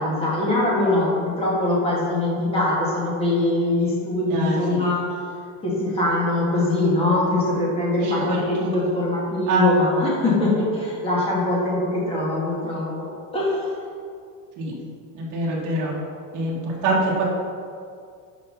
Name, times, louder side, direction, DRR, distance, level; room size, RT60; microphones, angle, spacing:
voice 1, 0.0-5.2 5.6-12.9 13.3-13.7, left 2 dB, 10° left, -6 dB, 2.0 m, -22 dB
voice 2, 8.0-8.7 9.5-9.6 14.6-14.7 15.1-15.9 16.3-16.6 16.8-17.2, right 2 dB, 40° right, -4 dB, 2.3 m, -24 dB
11.0 x 5.9 x 4.1 m, 2.2 s
cardioid pair, 170°, 45 cm